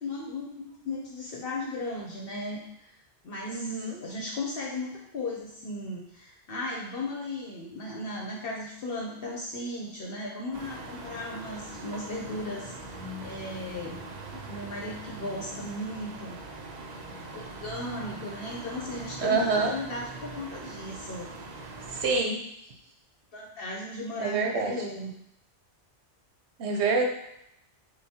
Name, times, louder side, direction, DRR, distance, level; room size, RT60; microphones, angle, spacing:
voice 1, 0.0-2.9 3.2-14.0 14.3-16.4 17.3-21.3 23.3-25.1, left 2 dB, 55° left, -2 dB, 0.9 m, -36 dB
voice 2, 3.4-4.0 19.2-19.7 21.9-22.4 24.2-24.7 26.6-27.0, right 4 dB, 70° right, 1 dB, 1.0 m, -26 dB
sound 1, 10.5-22.2, right 2 dB, 55° right, 0.5 m, -42 dB
6.8 x 2.3 x 2.8 m, 0.78 s
omnidirectional pair, 1.2 m